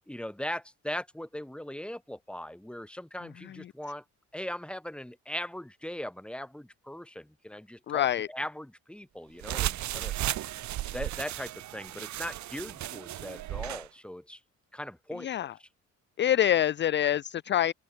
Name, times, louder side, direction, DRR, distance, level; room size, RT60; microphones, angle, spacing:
voice 1, 0.1-4.0 4.3-10.1 10.9-14.4 14.7-15.7, left 1 dB, 5° left, 2.2 m, -39 dB
voice 2, 7.9-8.3 15.2-15.5 16.2-17.7, left 11 dB, 40° left, 0.4 m, -26 dB
sound 1, 9.4-13.9, right 14 dB, 70° right, 0.8 m, -35 dB
open air
cardioid pair, 90°, 30 cm